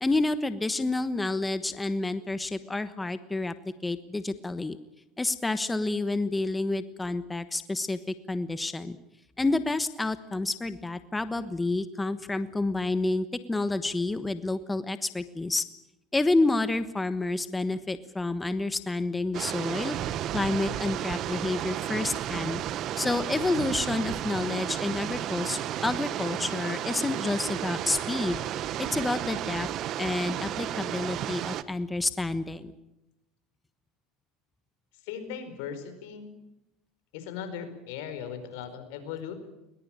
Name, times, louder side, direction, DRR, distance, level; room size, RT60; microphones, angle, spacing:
voice 1, 0.0-3.5 3.8-4.8 5.2-9.0 9.4-15.6 16.1-20.0 20.3-22.6 23.0-28.4 28.8-29.7 30.0-32.7, left 2 dB, 10° left, 12 dB, 1.2 m, -29 dB
sound 1, 19.3-31.6, right 11 dB, 50° right, 1.2 m, -33 dB
voice 2, 35.0-36.3 37.1-39.3, left 8 dB, 80° left, 9 dB, 4.8 m, -38 dB
21.0 x 20.5 x 8.9 m, 0.91 s
supercardioid pair, 110°, 0 cm